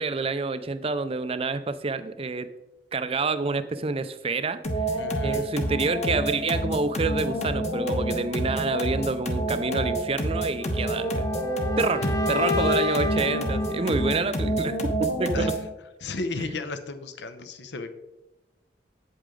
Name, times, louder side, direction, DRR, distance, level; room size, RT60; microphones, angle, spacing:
voice 1, 0.0-2.5 2.9-4.6 4.9-11.3 11.8-12.0 12.3-15.5, right 3 dB, 30° right, 12 dB, 0.5 m, -28 dB
sound 1, 4.6-15.7, equal, 35° left, 1.2 m, -28 dB
voice 2, 4.9-5.5 12.0-12.1 15.3-15.5 16.0-17.9, left 3 dB, 70° left, 8 dB, 0.8 m, -34 dB
sound 2, 10.6-14.6, left 2 dB, 20° left, 0.6 m, -31 dB
8.6 x 8.2 x 3.8 m, 1.0 s
head